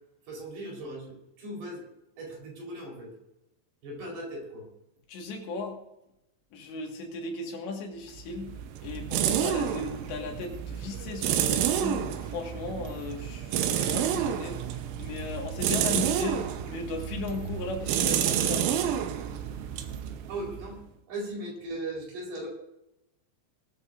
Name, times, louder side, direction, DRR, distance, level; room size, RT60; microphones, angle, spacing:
voice 1, 0.3-1.9 2.2-3.1 3.8-4.7 20.3-20.8 21.1-22.5, right 1 dB, 55° right, -2 dB, 6.0 m, -38 dB
voice 2, 5.1-5.8 6.5-8.6 8.8-14.6 15.0-18.8, left 3 dB, 70° left, 2 dB, 4.0 m, -36 dB
sound 1, 8.2-20.8, right 10 dB, 85° right, 3.4 m, -30 dB
19.5 x 14.0 x 2.6 m, 0.89 s
omnidirectional pair, 5.5 m